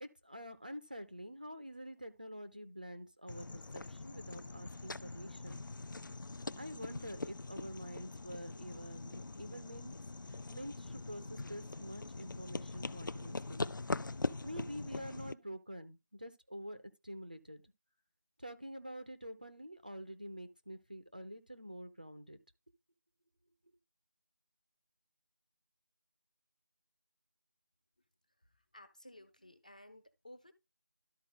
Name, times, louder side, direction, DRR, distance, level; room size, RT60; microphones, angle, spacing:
voice 1, 0.0-5.7 6.6-10.0 10.3-13.7 14.4-17.6 18.4-22.4 23.6-23.7, equal, 25° right, 0.5 m, -47 dB
sound 1, 3.3-15.3, left 3 dB, 85° left, 0.5 m, -42 dB
voice 2, 28.4-30.5, left 1 dB, 25° left, 0.5 m, -56 dB
12.5 x 4.2 x 3.7 m
figure-of-eight pair, 175°, 10 cm